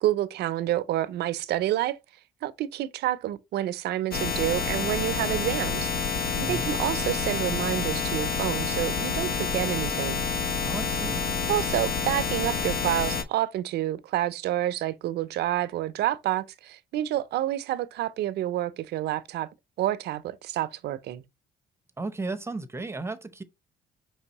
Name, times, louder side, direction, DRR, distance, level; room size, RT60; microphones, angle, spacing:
voice 1, 0.0-2.0 2.4-10.2 11.5-19.5 19.8-21.2, right 13 dB, 75° right, 0.5 m, -28 dB
sound 1, 4.1-13.2, left 5 dB, 60° left, 0.8 m, -28 dB
voice 2, 6.4-6.7 10.6-11.2 22.0-23.4, right 3 dB, 15° right, 0.7 m, -34 dB
5.4 x 3.2 x 2.9 m
cardioid pair, 90°, 17 cm